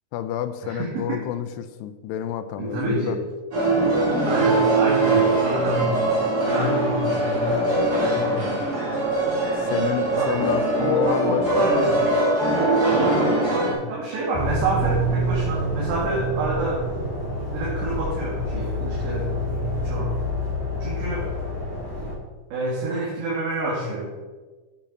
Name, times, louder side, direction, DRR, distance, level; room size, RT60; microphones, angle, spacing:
voice 1, 0.1-3.2 9.6-12.0, left 10 dB, 85° left, 10 dB, 2.5 m, -29 dB
voice 2, 0.6-1.2 2.6-3.1 4.2-5.9 6.4-8.6 10.1-10.5 10.8-12.2 13.0-16.8 17.4-20.2 20.8-21.3 22.5-24.2, right 1 dB, 75° right, -6 dB, 4.3 m, -28 dB
sound 1, 3.5-13.7, right 2 dB, 25° right, 2.4 m, -21 dB
sound 2, 14.3-22.1, equal, 10° left, 3.1 m, -27 dB
9.0 x 7.0 x 5.8 m, 1.3 s
omnidirectional pair, 5.1 m